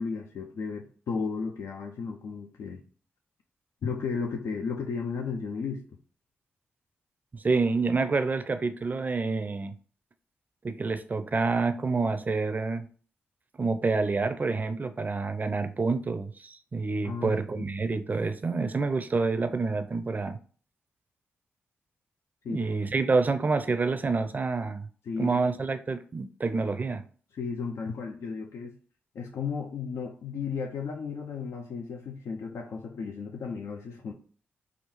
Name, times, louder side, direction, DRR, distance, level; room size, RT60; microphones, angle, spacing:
voice 1, 0.0-2.8 3.8-5.8 17.0-17.7 22.4-22.7 25.0-25.4 27.3-28.7 29.1-34.1, left 5 dB, 70° left, 0.4 m, -34 dB
voice 2, 7.3-9.7 10.6-12.9 13.6-20.4 22.5-24.9 25.2-27.0, right 4 dB, 35° right, 0.4 m, -28 dB
3.5 x 2.3 x 3.0 m
supercardioid pair, 50°, 5 cm